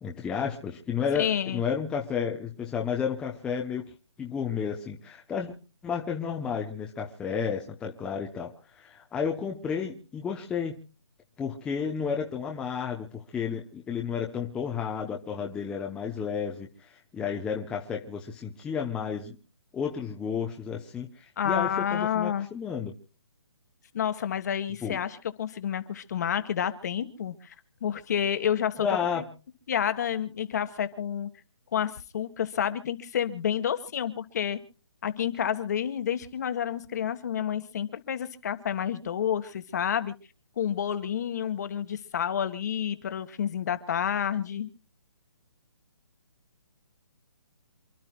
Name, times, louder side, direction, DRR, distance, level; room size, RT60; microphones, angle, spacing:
voice 1, 0.0-3.9 4.2-5.5 5.8-10.8 11.4-19.4 19.7-22.9 24.8-25.0 28.8-29.3, left 7 dB, 5° left, 0 dB, 0.8 m, -32 dB
voice 2, 1.1-1.6 21.4-22.5 23.9-27.5 27.8-28.9 29.1-29.2 29.7-31.3 31.7-34.6 35.0-40.1 40.6-44.7, left 9 dB, 40° left, 10 dB, 1.6 m, -29 dB
28.0 x 12.0 x 2.3 m, 0.37 s
hypercardioid pair, 165°, 14 cm